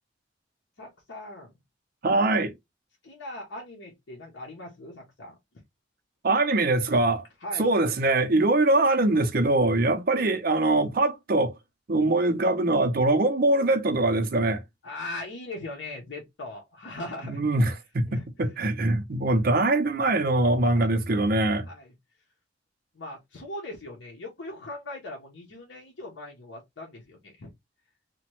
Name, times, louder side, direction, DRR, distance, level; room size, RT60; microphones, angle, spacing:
voice 1, 0.8-1.5 3.0-5.4 7.4-7.7 14.8-17.4 18.0-18.3 18.9-19.0 20.7-20.9 21.6-21.9 22.9-27.5, left 2 dB, 75° left, 0.8 m, -40 dB
voice 2, 2.0-2.5 6.2-7.2 7.6-11.5 11.9-14.6 17.3-21.7, right 2 dB, 50° right, 0.5 m, -23 dB
2.9 x 2.1 x 2.9 m
head